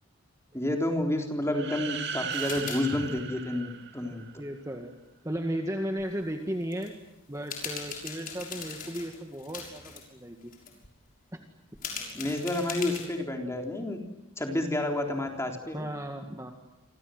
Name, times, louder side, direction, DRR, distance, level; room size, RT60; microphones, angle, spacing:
voice 1, 0.5-4.2 12.1-14.0 14.4-15.9, left 1 dB, 15° left, 2 dB, 3.8 m, -30 dB
sound 1, 1.5-4.4, right 7 dB, 50° right, 2.3 m, -37 dB
sound 2, 2.3-2.8 3.1-3.2 6.0-6.1 6.6-6.9 7.3-10.0 10.4-10.9 11.7-13.2, left 6 dB, 40° left, 6.6 m, -40 dB
voice 2, 4.4-4.9 5.2-6.9 7.3-10.5 11.3-11.4 15.7-16.5, equal, 15° right, 4 dB, 2.0 m, -35 dB
28.5 x 25.5 x 7.9 m, 0.94 s
head